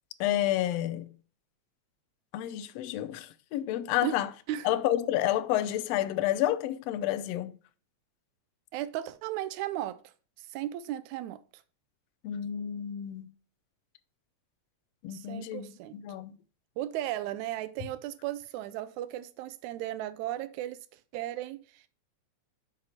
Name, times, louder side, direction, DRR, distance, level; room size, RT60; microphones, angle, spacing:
voice 1, 0.2-1.1 2.3-4.3 4.6-7.5 12.2-13.3 15.0-15.7 15.9-16.3, left 13 dB, 75° left, 1.6 m, -30 dB
voice 2, 8.7-10.0 10.4-11.4 15.1-16.0 16.8-20.8 21.1-21.9, right 13 dB, 85° right, 2.0 m, -35 dB
5.7 x 5.3 x 5.6 m
omnidirectional pair, 3.3 m